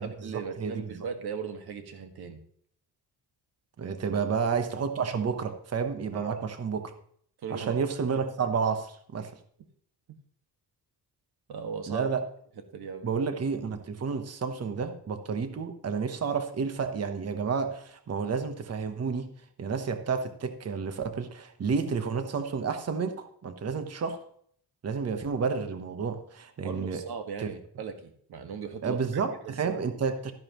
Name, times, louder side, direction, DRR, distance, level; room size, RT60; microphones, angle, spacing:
voice 1, 0.0-2.4 4.1-4.2 6.1-6.5 7.4-7.8 11.5-12.1 12.7-13.1 26.6-29.0 29.4-29.8, right 6 dB, 60° right, 6 dB, 1.8 m, -38 dB
voice 2, 0.6-1.0 3.8-6.9 7.5-9.3 11.9-12.2 13.0-19.3 19.6-24.2 24.8-27.0 28.8-30.3, right 5 dB, 35° right, 8 dB, 1.1 m, -30 dB
13.0 x 10.5 x 3.0 m, 0.62 s
wide cardioid pair, 160°, 42 cm